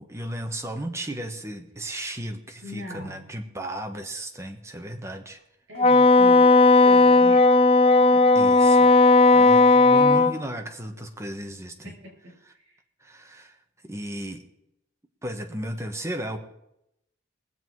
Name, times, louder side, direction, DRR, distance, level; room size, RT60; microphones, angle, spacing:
voice 1, 0.0-5.4 8.3-8.9 9.3-11.9 13.0-13.6 13.8-14.4 15.2-16.4, right 1 dB, 15° right, 4 dB, 1.3 m, -35 dB
voice 2, 2.6-3.3 5.7-7.5 8.1-8.3 11.8-12.8, left 1 dB, 70° right, 1 dB, 5.9 m, -41 dB
Wind instrument woodwind instrument, 5.8-10.3, left 3 dB, 30° left, 0.5 m, -15 dB
21.0 x 7.8 x 4.7 m, 0.82 s
head